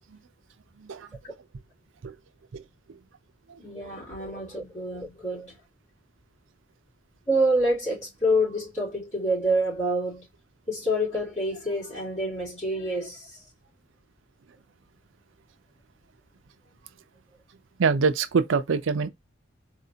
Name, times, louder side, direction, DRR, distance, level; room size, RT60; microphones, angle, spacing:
voice 1, 3.6-5.5 7.3-10.2 10.7-13.4, equal, 40° left, 2.9 m, -27 dB
voice 2, 17.8-19.1, right 5 dB, 85° right, 0.5 m, -23 dB
4.1 x 2.6 x 2.7 m
head